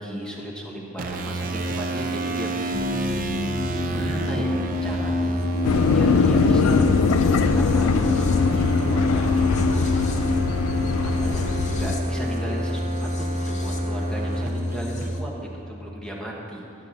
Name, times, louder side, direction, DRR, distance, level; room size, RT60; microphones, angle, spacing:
voice 1, 0.0-6.8 7.5-7.9 8.3-9.9 11.1-16.6, equal, 5° left, -3 dB, 1.1 m, -36 dB
sound 1, 1.0-15.1, right 1 dB, 40° right, 0.5 m, -27 dB
sound 2, 2.7-15.2, left 3 dB, 35° left, 0.7 m, -28 dB
sound 3, 5.6-12.0, left 5 dB, 85° left, 0.3 m, -22 dB
13.0 x 7.3 x 2.7 m, 2.7 s
head